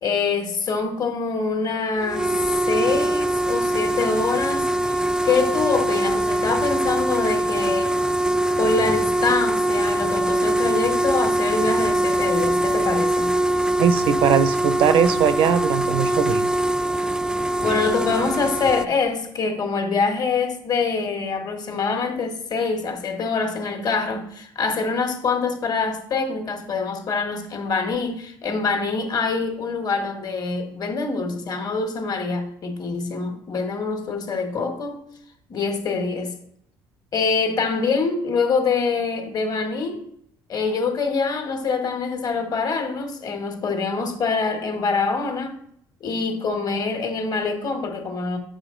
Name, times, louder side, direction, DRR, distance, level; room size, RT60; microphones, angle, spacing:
voice 1, 0.0-8.0 8.6-13.4 17.6-35.0 35.5-36.3 37.1-40.0 40.5-45.6 46.0-48.4, left 4 dB, 45° left, 1.5 m, -25 dB
sound 1, 2.0-18.9, right 1 dB, 10° right, 0.3 m, -22 dB
voice 2, 13.8-16.5, right 8 dB, 70° right, 0.5 m, -20 dB
6.7 x 5.1 x 3.8 m
supercardioid pair, 90°, 9 cm